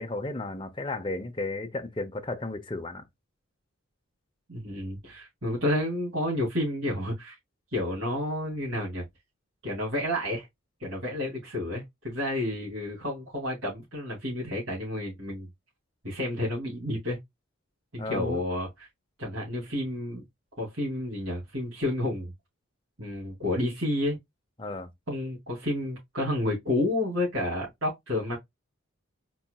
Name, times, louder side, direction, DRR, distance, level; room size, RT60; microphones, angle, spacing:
voice 1, 0.0-3.0 18.0-18.4 24.6-24.9, left 2 dB, 25° left, 0.7 m, -34 dB
voice 2, 4.5-7.3 7.7-9.0 9.6-10.5 10.8-15.5 16.0-17.2 17.9-18.9 19.2-20.2 20.6-22.3 23.0-24.2 25.1-28.4, left 1 dB, 60° right, 2.7 m, -30 dB
4.4 x 4.4 x 2.3 m
head